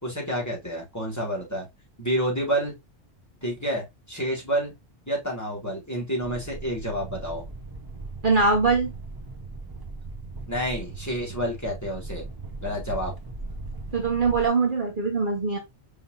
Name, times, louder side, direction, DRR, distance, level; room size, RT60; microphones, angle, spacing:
voice 1, 0.0-1.7 2.0-2.7 3.4-4.7 5.1-7.4 10.5-12.3 12.6-13.1, equal, 15° left, 1.9 m, -29 dB
sound 1, 6.2-14.5, right 3 dB, 25° right, 0.6 m, -38 dB
voice 2, 8.2-8.9 13.9-15.6, right 4 dB, 45° right, 1.2 m, -22 dB
5.4 x 3.4 x 2.5 m
omnidirectional pair, 1.2 m